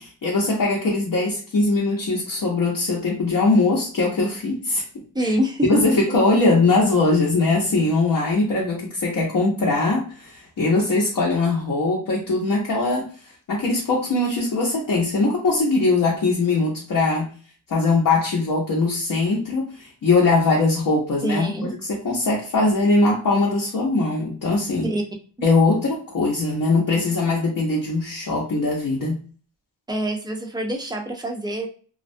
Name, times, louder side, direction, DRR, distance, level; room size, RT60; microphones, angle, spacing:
voice 1, 0.0-4.8 5.2-5.3 5.6-13.1 13.5-17.3 17.7-24.9 25.4-29.2, left 3 dB, 50° left, -4 dB, 0.7 m, -21 dB
voice 2, 5.1-5.7 21.2-21.7 24.8-25.0 29.9-31.7, right 1 dB, 10° right, 1 dB, 0.5 m, -25 dB
2.3 x 2.1 x 2.5 m, 0.41 s
wide cardioid pair, 110°, 45 cm